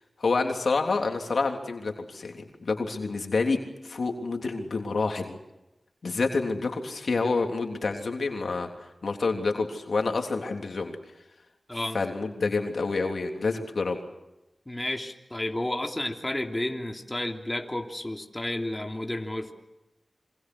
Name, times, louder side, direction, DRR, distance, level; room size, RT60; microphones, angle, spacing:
voice 1, 0.2-3.6 3.8-5.4 6.0-8.7 9.0-10.9 11.9-14.0, left 3 dB, 80° left, 3 dB, 3.3 m, -28 dB
voice 2, 11.7-12.0 14.7-19.5, left 1 dB, 20° left, 3 dB, 3.2 m, -31 dB
27.5 x 25.0 x 6.3 m, 0.95 s
cardioid pair, 50°, 0 cm